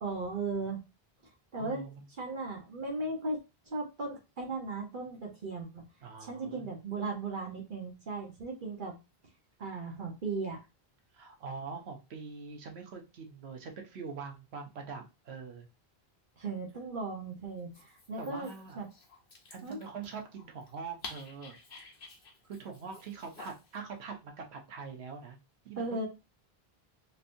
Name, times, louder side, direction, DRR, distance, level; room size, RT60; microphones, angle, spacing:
voice 1, 0.0-0.8 1.5-1.8 2.2-3.4 3.7-5.8 6.2-9.0 9.6-10.6 16.4-18.5 18.7-18.9 19.6-19.8 25.8-26.1, right 3 dB, 55° right, 0 dB, 1.0 m, -36 dB
voice 2, 1.6-2.0 6.0-6.7 11.1-15.7 18.2-18.8 19.5-21.6 22.5-25.4 25.6-26.1, right 5 dB, 85° right, 3 dB, 1.1 m, -43 dB
Dog, 17.6-23.8, left 3 dB, 60° left, 1.1 m, -51 dB
3.3 x 2.9 x 2.5 m, 0.27 s
omnidirectional pair, 1.0 m